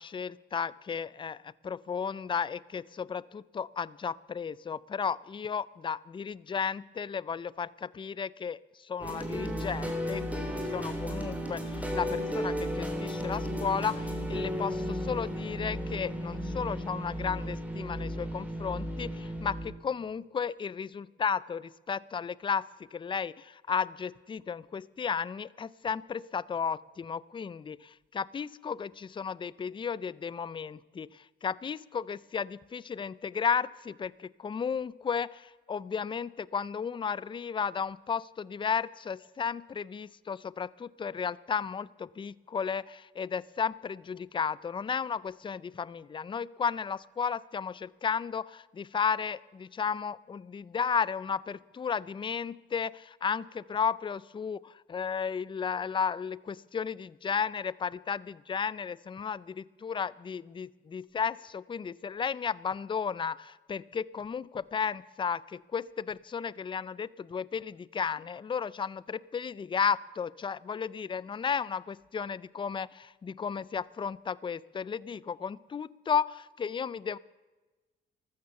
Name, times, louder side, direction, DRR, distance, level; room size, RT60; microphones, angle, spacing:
voice 1, 0.0-8.6 8.9-22.6 22.9-77.2, left 6 dB, 25° left, 21 dB, 0.4 m, -34 dB
sound 1, 9.0-19.6, equal, 5° right, 3.4 m, -34 dB
14.0 x 13.0 x 6.8 m, 1.2 s
cardioid pair, 90°, 20 cm